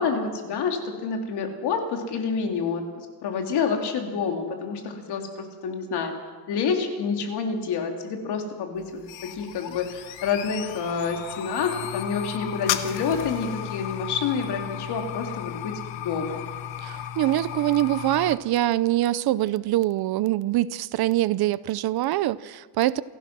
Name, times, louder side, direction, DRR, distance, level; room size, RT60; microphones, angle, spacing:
voice 1, 0.0-16.4, left 5 dB, 60° left, 3.2 m, -28 dB
sound 1, 8.8-18.4, left 11 dB, 85° left, 1.4 m, -34 dB
voice 2, 16.8-23.0, right 15 dB, 60° right, 0.6 m, -24 dB
28.0 x 15.0 x 6.1 m
cardioid pair, 165°, 44 cm